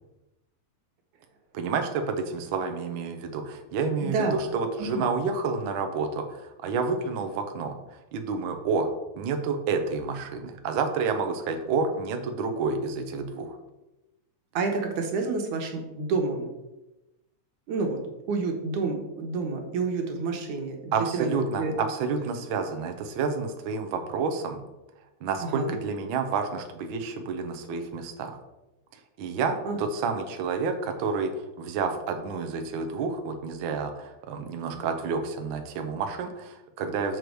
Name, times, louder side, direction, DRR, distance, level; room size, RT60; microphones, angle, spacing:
voice 1, 1.5-7.8 8.1-8.9 9.2-13.6 20.9-24.6 25.2-28.4 29.2-37.2, right 4 dB, 70° right, 6 dB, 1.2 m, -29 dB
voice 2, 4.0-4.3 4.8-5.1 14.5-16.5 17.7-18.0 18.3-21.7 25.4-25.8 29.7-29.8, right 4 dB, 85° right, 3 dB, 2.7 m, -29 dB
6.7 x 6.3 x 4.7 m, 0.98 s
omnidirectional pair, 3.4 m